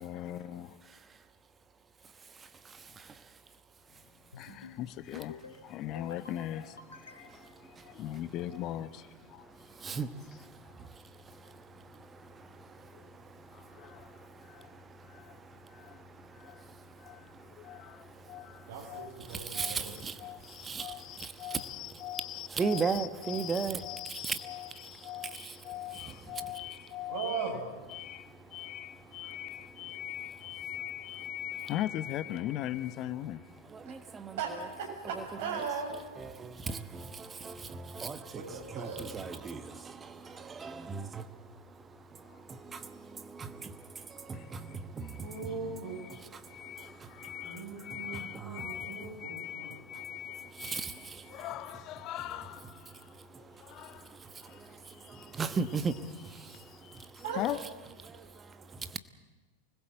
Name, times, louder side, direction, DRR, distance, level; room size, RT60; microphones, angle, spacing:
voice 1, 0.0-0.7 4.4-9.5 10.3-10.4 10.6-10.7 12.9-13.1 13.5-14.7 15.0-15.4 15.7-16.0 16.3-16.7 17.0-19.2 19.5-27.5 27.9-33.6 39.5-39.8 42.3-42.4 44.3-45.6 45.8-53.1 53.4-55.4 56.4-57.1 57.3-57.6, left 13 dB, 35° left, 0.8 m, -41 dB
voice 2, 2.6-3.1 7.4-7.8 9.7-10.5 10.8-10.9 11.3-18.3 18.6-18.7 19.3-21.7 22.5-23.8 24.1-24.4 24.8-25.6 25.9-26.2 33.7-34.4 35.1-35.2 36.2-41.5 42.2-45.8 46.2-47.3 47.9-48.8 49.9-50.1 50.5-51.4 52.9-53.4 54.0-56.6 56.9-57.2 58.1-59.0, right 5 dB, 20° right, 1.2 m, -39 dB
sound 1, 4.3-4.8 5.1-5.6 6.0-6.4 6.8-7.5, left 4 dB, 75° left, 2.6 m, -49 dB
voice 3, 18.7-19.9 27.1-27.6 34.4-36.0 38.3-39.1 45.2-46.1 47.4-49.7 57.2-57.4, right 5 dB, 55° right, 7.0 m, -38 dB
25.0 x 20.5 x 7.7 m
figure-of-eight pair, 90°, 0 cm